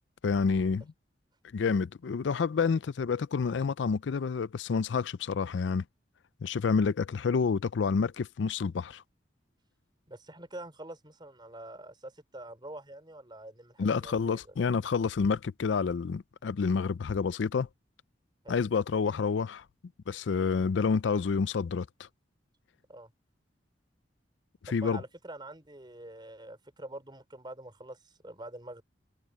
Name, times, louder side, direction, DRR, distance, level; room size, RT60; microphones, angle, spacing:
voice 1, 0.2-0.9 1.5-5.8 6.4-9.0 13.8-17.7 18.5-19.6 20.1-22.1 24.7-25.0, left 5 dB, 80° left, 0.4 m, -28 dB
voice 2, 10.1-14.4 18.4-18.6 22.9-23.1 24.7-28.8, right 1 dB, 25° right, 5.0 m, -45 dB
head